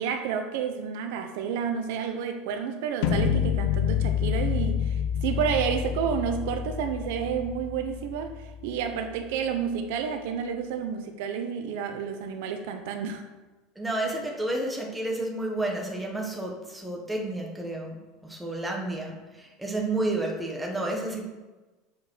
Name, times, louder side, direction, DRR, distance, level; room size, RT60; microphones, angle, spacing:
voice 1, 0.0-13.2, right 7 dB, 70° right, 0.8 m, -30 dB
sound 1, 3.0-9.0, left 9 dB, 80° left, 0.8 m, -28 dB
voice 2, 13.7-21.2, right 2 dB, 5° right, 1.3 m, -31 dB
6.8 x 5.2 x 6.3 m
supercardioid pair, 155°, 0 cm